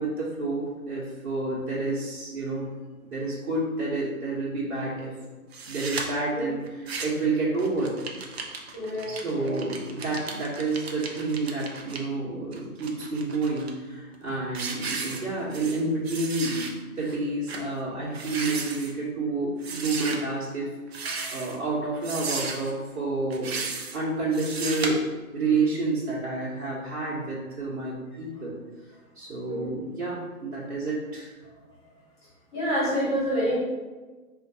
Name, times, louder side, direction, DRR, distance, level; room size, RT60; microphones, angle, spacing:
voice 1, 0.0-2.7 3.0-5.1 5.7-8.0 9.1-20.7 21.0-23.6 23.9-25.0 25.3-28.6 29.1-31.3, right 3 dB, 60° right, -8 dB, 1.1 m, -29 dB
sound 1, 5.5-6.0 6.7-7.3 7.6-12.0 12.5-13.7 14.1-14.3 14.5-15.8 16.1-16.7 17.1-17.2 17.5-17.7 18.1-18.9 19.6-20.2 20.9-21.6 22.0-22.7 23.3-24.0 24.3-24.9, right 4 dB, 45° right, 0.5 m, -34 dB
voice 2, 8.7-9.6 15.0-15.1 21.2-21.4 29.5-29.7 32.5-33.6, equal, 15° left, -9 dB, 1.4 m, -28 dB
4.2 x 2.6 x 2.8 m, 1.3 s
figure-of-eight pair, 145°, 44 cm